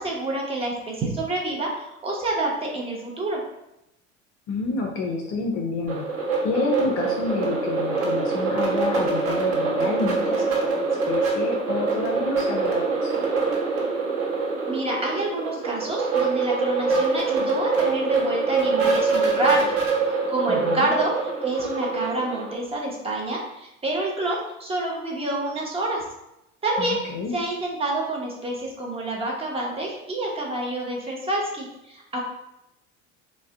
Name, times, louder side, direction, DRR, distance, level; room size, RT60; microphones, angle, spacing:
voice 1, 0.0-3.4 14.7-19.7 20.3-26.0 26.6-27.0 27.3-32.2, right 2 dB, 15° right, -1 dB, 0.7 m, -28 dB
voice 2, 4.5-6.1 6.4-13.1 20.5-20.9 26.8-27.3, left 4 dB, 35° left, 0 dB, 0.4 m, -29 dB
sound 1, 5.9-22.6, right 4 dB, 35° right, 1.0 m, -24 dB
3.4 x 2.2 x 3.3 m, 0.87 s
figure-of-eight pair, 70°, 38 cm